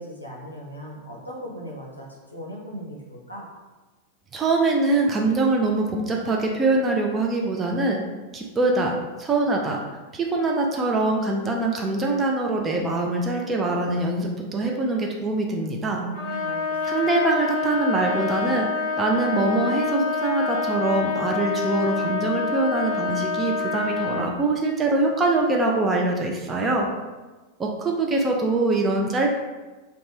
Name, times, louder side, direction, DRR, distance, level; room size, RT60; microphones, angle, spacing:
voice 1, 0.0-3.5 15.9-17.1, right 1 dB, 85° left, -3 dB, 0.5 m, -38 dB
voice 2, 4.3-8.0 8.3-9.8 10.1-16.0 16.8-18.7 19.0-26.9 27.6-29.4, right 2 dB, 20° right, 0 dB, 0.3 m, -23 dB
Trumpet, 16.1-24.3, left 4 dB, 45° left, 0.8 m, -27 dB
2.5 x 2.2 x 3.2 m, 1.2 s
figure-of-eight pair, 90°, 0 cm